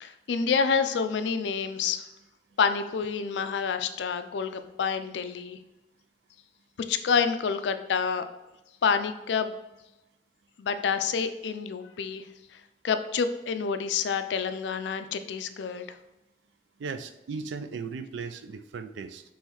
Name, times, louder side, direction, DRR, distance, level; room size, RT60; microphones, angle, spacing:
voice 1, 0.0-2.0 2.6-5.6 6.9-8.2 8.8-9.6 10.6-12.2 12.8-16.0, left 6 dB, 80° left, 10 dB, 0.4 m, -28 dB
voice 2, 16.8-19.2, right 5 dB, 80° right, 9 dB, 0.4 m, -37 dB
5.5 x 3.1 x 3.0 m, 0.98 s
head